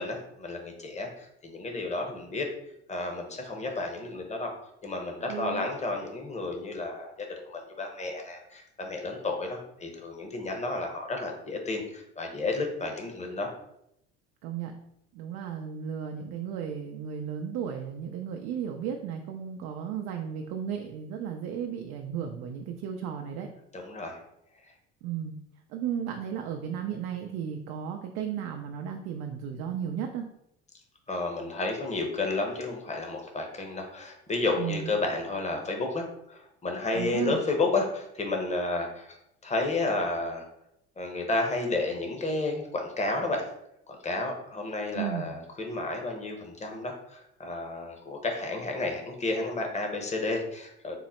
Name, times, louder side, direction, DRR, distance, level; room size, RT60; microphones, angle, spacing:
voice 1, 0.0-2.5 2.9-4.5 4.8-13.5 23.7-24.2 31.1-39.2 39.4-40.4 41.0-43.5 43.9-51.0, left 2 dB, 20° left, 2 dB, 0.9 m, -31 dB
voice 2, 5.3-5.7 14.4-14.7 15.1-23.5 25.0-25.3 25.7-30.3 34.6-34.9 36.9-37.4 44.9-45.3, right 8 dB, 70° right, 3 dB, 0.5 m, -34 dB
3.8 x 2.0 x 4.2 m, 0.78 s
supercardioid pair, 85°, 30 cm